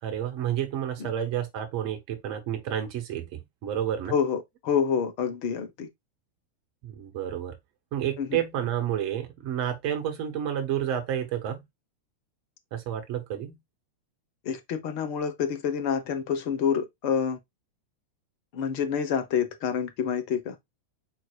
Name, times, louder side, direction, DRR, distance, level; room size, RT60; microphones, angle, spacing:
voice 1, 0.0-4.1 6.8-7.5 7.9-11.6 12.7-13.6, right 10 dB, 45° right, 1.3 m, -30 dB
voice 2, 4.1-5.9 8.2-8.4 14.4-17.4 18.5-20.5, left 7 dB, 45° left, 1.2 m, -27 dB
4.6 x 4.5 x 2.4 m
figure-of-eight pair, 90°, 0 cm